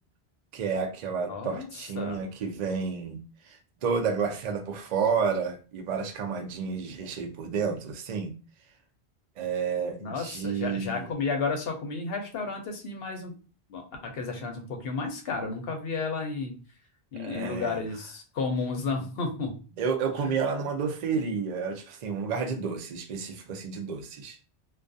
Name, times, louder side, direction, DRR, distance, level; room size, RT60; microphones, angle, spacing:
voice 1, 0.5-3.2 3.4-8.3 9.4-11.1 17.2-17.8 19.8-24.4, right 6 dB, 55° right, 5 dB, 0.5 m, -30 dB
voice 2, 1.3-2.2 10.0-13.3 13.7-16.5 17.1-19.6 20.2-20.4, left 4 dB, 65° left, 3 dB, 0.8 m, -32 dB
2.3 x 2.3 x 2.5 m, 0.36 s
omnidirectional pair, 1.1 m